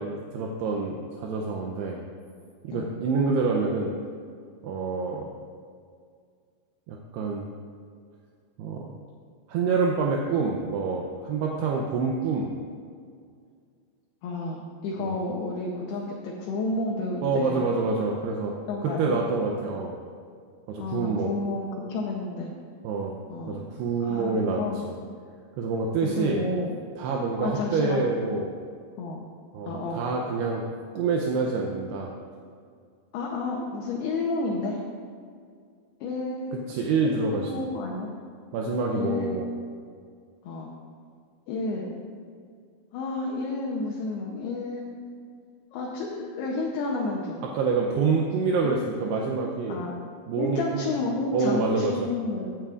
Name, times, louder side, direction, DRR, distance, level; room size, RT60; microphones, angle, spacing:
voice 1, 0.0-2.0 2.6-3.9 4.6-5.3 6.9-7.5 8.6-8.9 9.5-12.5 15.0-15.2 17.2-18.6 18.8-19.9 20.7-21.3 22.8-23.2 23.5-24.9 25.6-26.4 27.0-28.5 29.5-30.6 31.0-32.1 36.5-37.6 38.5-39.5 47.4-49.9 50.3-50.9 51.3-52.1, right 4 dB, 80° right, 0 dB, 2.6 m, -27 dB
voice 2, 14.2-17.7 18.7-19.2 20.8-22.5 23.3-23.6 24.0-24.8 26.0-26.7 27.4-28.0 29.0-29.2 29.6-30.1 33.1-34.8 36.0-36.5 37.3-38.2 38.9-39.4 40.4-40.7 41.5-41.9 42.9-44.9 45.7-47.4 48.5-48.8 49.7-49.9 50.4-52.5, left 3 dB, 75° left, -2 dB, 2.6 m, -31 dB
16.0 x 9.0 x 2.5 m, 2.2 s
omnidirectional pair, 5.0 m